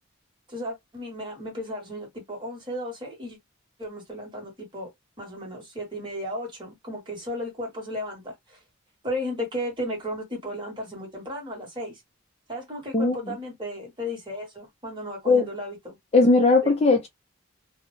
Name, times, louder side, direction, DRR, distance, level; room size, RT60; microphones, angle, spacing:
voice 1, 0.5-3.4 3.8-4.9 5.2-8.6 9.0-12.0 12.5-16.0 16.6-16.7, equal, 20° right, 1.0 m, -34 dB
voice 2, 12.9-13.3 15.3-15.4 16.1-17.1, left 3 dB, 30° left, 0.4 m, -19 dB
2.1 x 2.0 x 3.0 m
head